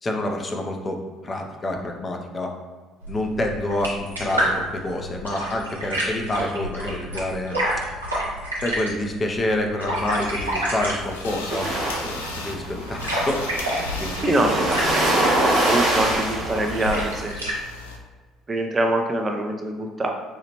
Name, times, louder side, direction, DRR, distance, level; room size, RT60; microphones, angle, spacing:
voice 1, 0.0-2.5 3.1-7.6 8.6-11.7 12.0-13.5 14.0-14.6, left 1 dB, 30° left, 2 dB, 0.5 m, -28 dB
sound 1, 3.0-17.6, right 1 dB, 85° right, 0.6 m, -30 dB
sound 2, 9.9-18.0, left 3 dB, 80° left, 0.3 m, -38 dB
sound 3, 11.5-17.2, right 1 dB, 70° right, 1.0 m, -24 dB
voice 2, 14.2-15.2 15.5-17.5 18.5-20.1, right 1 dB, 25° right, 3 dB, 0.5 m, -24 dB
4.4 x 2.4 x 2.9 m, 1.4 s
figure-of-eight pair, 55°, 0 cm